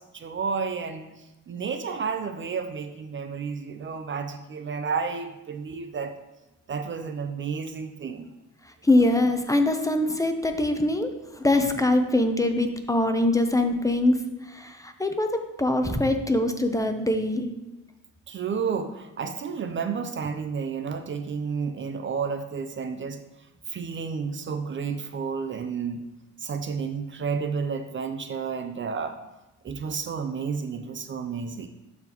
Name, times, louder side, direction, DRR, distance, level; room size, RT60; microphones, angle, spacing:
voice 1, 0.0-6.2 6.7-8.3 18.3-23.2 23.7-26.0 26.4-29.2 29.6-31.7, right 5 dB, 40° right, 7 dB, 0.5 m, -31 dB
voice 2, 8.8-17.5, left 1 dB, 10° left, 6 dB, 0.6 m, -23 dB
12.0 x 4.0 x 3.0 m, 1.0 s
cardioid pair, 90°, 30 cm